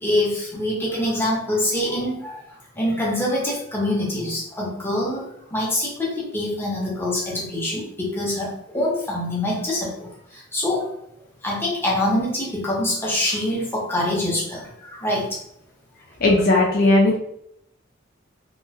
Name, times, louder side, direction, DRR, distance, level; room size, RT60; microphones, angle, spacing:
voice 1, 0.0-2.4 2.8-10.9 11.4-15.4, left 1 dB, 10° left, -5 dB, 0.8 m, -25 dB
voice 2, 16.2-17.2, left 2 dB, 50° left, -2 dB, 0.5 m, -16 dB
3.0 x 2.4 x 2.6 m, 0.74 s
head